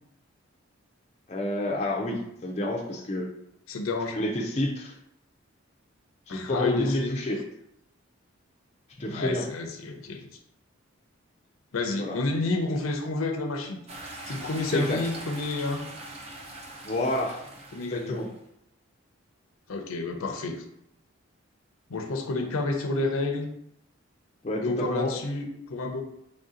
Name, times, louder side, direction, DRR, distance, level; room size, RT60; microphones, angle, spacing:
voice 1, 1.3-3.3 4.1-4.9 6.3-7.4 9.0-9.5 11.9-12.2 14.7-15.0 16.8-17.4 17.9-18.3 24.4-25.1, left 1 dB, 30° left, -1 dB, 0.4 m, -29 dB
voice 2, 3.7-4.2 6.3-7.2 9.0-10.2 11.7-13.8 14.2-15.8 17.7-18.2 19.7-20.6 21.9-23.5 24.6-26.0, left 2 dB, 80° left, 4 dB, 0.5 m, -30 dB
sound 1, 13.9-18.4, right 2 dB, 30° right, 0.5 m, -42 dB
3.4 x 2.7 x 3.7 m, 0.76 s
head